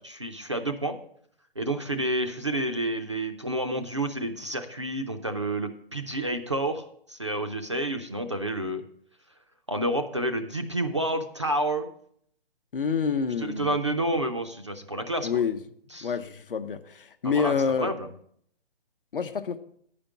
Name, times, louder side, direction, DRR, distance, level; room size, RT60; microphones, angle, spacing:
voice 1, 0.1-1.0 1.6-8.8 9.7-11.9 13.4-15.4 15.9-16.1 17.2-17.5 17.8-18.1, right 1 dB, 30° right, 6 dB, 0.4 m, -29 dB
voice 2, 12.7-13.7 15.2-15.6 16.0-17.9 19.1-19.6, left 6 dB, 60° left, 10 dB, 0.8 m, -27 dB
9.9 x 5.1 x 6.9 m, 0.65 s
hypercardioid pair, 170°, 31 cm